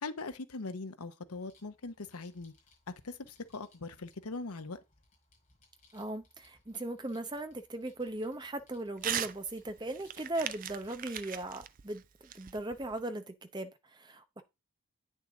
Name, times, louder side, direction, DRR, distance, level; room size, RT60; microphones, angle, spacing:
voice 1, 0.0-2.5 3.0-4.8, left 3 dB, 85° left, 0.9 m, -41 dB
sound 1, 1.2-11.6, left 3 dB, 35° left, 5.2 m, -68 dB
voice 2, 5.9-12.0 12.3-14.4, right 2 dB, 20° right, 0.8 m, -38 dB
Crumpling crinkling / Tearing, 9.0-9.4 9.7-13.0, right 10 dB, 40° right, 0.4 m, -38 dB
8.8 x 6.5 x 3.7 m
head